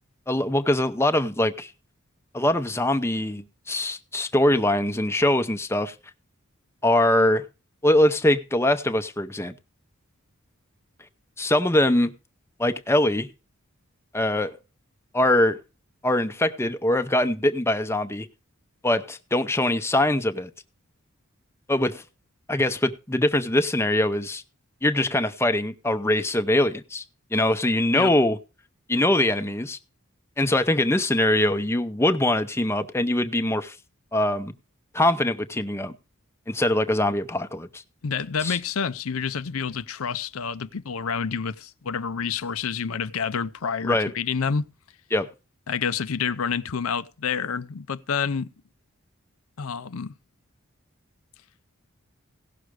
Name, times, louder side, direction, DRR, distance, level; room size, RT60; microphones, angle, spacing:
voice 1, 0.3-1.7 2.3-5.9 6.8-7.4 7.8-9.5 11.4-12.1 12.6-13.3 14.1-14.5 15.1-15.6 16.0-18.3 18.8-20.5 21.7-22.0 22.5-24.4 24.8-27.0 27.3-28.4 28.9-29.8 30.4-33.8 34.1-34.5 34.9-35.9 36.5-37.8 38.4-38.6 43.8-44.1 45.1-45.3, left 1 dB, 10° left, 0.7 m, -22 dB
voice 2, 38.0-44.6 45.7-48.5 49.6-50.1, left 6 dB, 90° left, 0.6 m, -28 dB
17.0 x 6.4 x 4.8 m
head